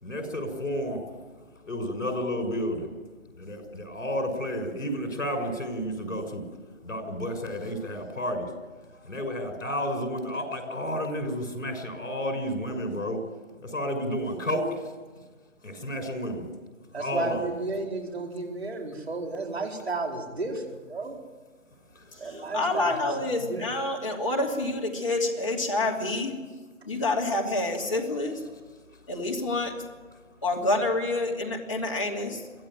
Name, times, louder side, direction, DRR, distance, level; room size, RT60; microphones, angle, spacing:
voice 1, 0.0-1.0 1.6-2.9 3.3-6.5 6.8-8.5 8.9-13.2 13.6-14.9 15.6-16.5 16.9-17.5 22.2-22.4, equal, 70° left, 5 dB, 6.4 m, -31 dB
voice 2, 16.9-21.2 22.2-23.7, right 3 dB, 50° right, 2 dB, 4.6 m, -33 dB
voice 3, 22.5-26.4 26.8-28.4 29.1-29.7 30.4-32.4, left 2 dB, 25° left, -1 dB, 2.7 m, -27 dB
23.5 x 15.5 x 9.0 m, 1.3 s
figure-of-eight pair, 170°, 40 cm